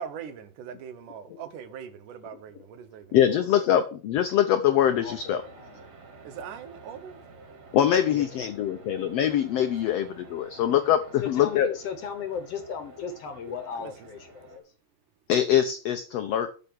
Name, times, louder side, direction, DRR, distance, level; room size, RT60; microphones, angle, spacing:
voice 1, 0.0-3.7 6.2-7.2 13.7-13.9, right 8 dB, 75° right, 2.6 m, -41 dB
voice 2, 3.1-5.4 7.7-11.7 15.3-16.5, left 10 dB, 80° left, 1.5 m, -23 dB
sound 1, 4.7-14.6, right 3 dB, 55° right, 3.4 m, -50 dB
voice 3, 5.0-5.8 8.1-8.8 11.2-14.6, left 7 dB, 60° left, 1.8 m, -37 dB
8.2 x 6.9 x 6.3 m
omnidirectional pair, 3.8 m